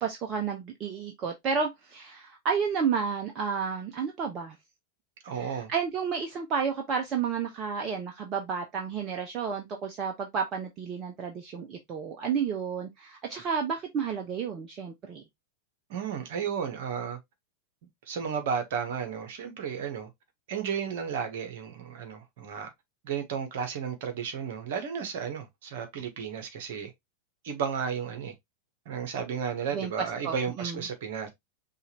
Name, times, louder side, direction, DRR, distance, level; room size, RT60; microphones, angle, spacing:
voice 1, 0.0-4.6 5.3-15.2 29.7-30.8, right 6 dB, 30° right, 0.8 m, -31 dB
voice 2, 5.2-5.7 15.9-17.2 18.1-20.1 20.5-22.7 23.0-26.9 27.4-28.3 28.8-31.3, right 7 dB, 55° right, 1.3 m, -33 dB
5.4 x 2.6 x 3.1 m
figure-of-eight pair, 90°, 0 cm